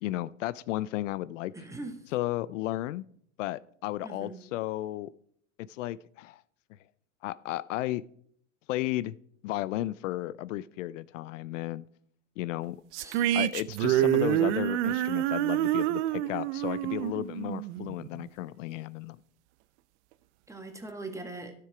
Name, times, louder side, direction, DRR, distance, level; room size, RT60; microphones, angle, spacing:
voice 1, 0.0-1.5 2.1-3.0 3.4-5.1 5.6-6.4 7.2-8.0 8.7-9.2 9.4-11.8 12.4-12.8 13.3-19.2, left 15 dB, 70° left, 17 dB, 0.5 m, -34 dB
voice 2, 1.5-2.0 4.0-4.4 13.0-13.3 20.5-21.5, right 2 dB, 10° right, 6 dB, 1.6 m, -41 dB
sound 1, 12.9-18.3, right 13 dB, 60° right, 0.7 m, -27 dB
12.0 x 6.7 x 4.9 m, 0.64 s
supercardioid pair, 120°, 39 cm